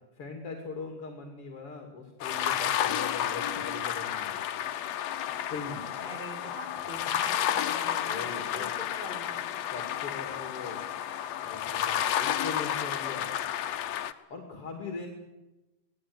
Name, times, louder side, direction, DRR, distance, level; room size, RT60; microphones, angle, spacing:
voice 1, 0.1-4.4 5.3-5.9 7.5-7.6 8.0-8.7 9.7-10.8 11.4-13.3 14.3-15.1, left 4 dB, 45° left, 3 dB, 3.3 m, -40 dB
sound 1, 2.2-14.1, left 10 dB, 65° left, 1.9 m, -31 dB
voice 2, 3.4-3.8 6.0-9.7, left 1 dB, 15° left, 2 dB, 4.0 m, -43 dB
25.5 x 17.5 x 9.6 m, 1.0 s
omnidirectional pair, 3.8 m